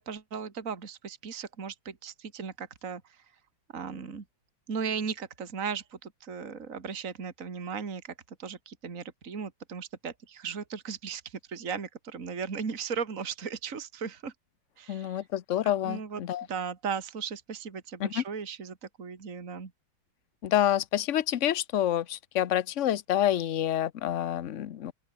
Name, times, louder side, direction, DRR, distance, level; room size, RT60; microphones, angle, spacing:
voice 1, 0.0-3.2 3.7-4.2 4.7-8.1 8.4-14.3 14.8-15.3 15.8-16.2 16.5-19.7, right 6 dB, 45° right, 2.5 m, -37 dB
voice 2, 14.9-16.5 18.0-18.2 20.4-24.9, left 11 dB, 55° left, 0.9 m, -28 dB
open air
omnidirectional pair, 2.1 m